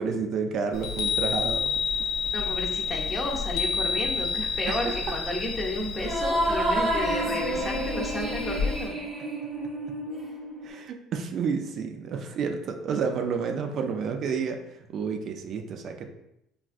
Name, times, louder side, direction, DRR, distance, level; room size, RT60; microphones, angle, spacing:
voice 1, 0.0-1.7 4.7-5.2 10.6-16.1, right 5 dB, 55° right, 5 dB, 0.4 m, -30 dB
Chime, 0.7-8.9, left 5 dB, 75° left, 0.6 m, -30 dB
voice 2, 2.3-8.9, left 1 dB, 20° left, 0 dB, 0.6 m, -32 dB
sound 1, 6.0-10.7, right 1 dB, 20° right, 0.7 m, -29 dB
3.3 x 2.4 x 2.4 m, 0.82 s
supercardioid pair, 100°, 0 cm